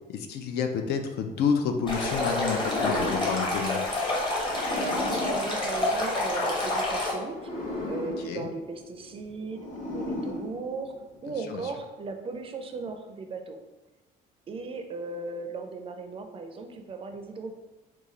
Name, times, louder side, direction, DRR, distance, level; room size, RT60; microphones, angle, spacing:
voice 1, 0.1-3.8 8.3-8.5 11.3-11.6, left 6 dB, 70° left, 6 dB, 0.4 m, -29 dB
Stream, 1.9-7.1, left 2 dB, 30° left, 1.0 m, -28 dB
sound 1, 2.4-6.5 7.2-11.2, left 1 dB, 50° left, 1.4 m, -37 dB
voice 2, 4.7-11.0 11.2-13.6 14.5-17.5, right 3 dB, 35° right, 6 dB, 0.4 m, -37 dB
3.1 x 2.3 x 3.7 m, 1.1 s
cardioid pair, 110°, 17 cm